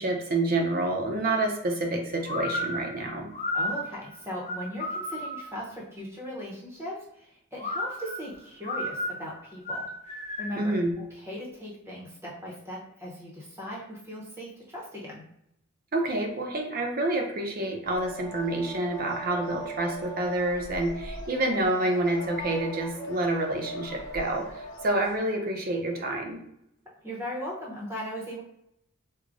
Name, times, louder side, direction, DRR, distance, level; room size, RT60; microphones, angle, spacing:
voice 1, 0.0-3.3 10.6-11.0 15.9-26.4, right 2 dB, 45° right, 2 dB, 0.6 m, -28 dB
sound 1, 2.3-5.6 7.6-10.7, left 1 dB, 30° left, 0.5 m, -33 dB
voice 2, 3.5-9.9 10.4-15.2 27.0-28.4, equal, 10° right, -5 dB, 0.8 m, -38 dB
sound 2, 17.8-25.2, right 1 dB, 70° left, 1.0 m, -40 dB
4.6 x 2.1 x 2.5 m, 0.76 s
head